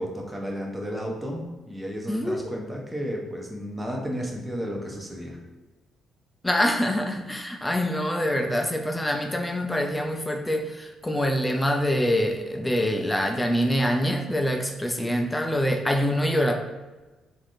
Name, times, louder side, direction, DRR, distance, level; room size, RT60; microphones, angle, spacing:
voice 1, 0.0-5.4, equal, 15° right, 0 dB, 0.7 m, -33 dB
voice 2, 2.1-2.5 6.4-16.5, equal, 10° left, 3 dB, 0.3 m, -25 dB
3.3 x 2.5 x 2.5 m, 1.2 s
cardioid pair, 90°, 0 cm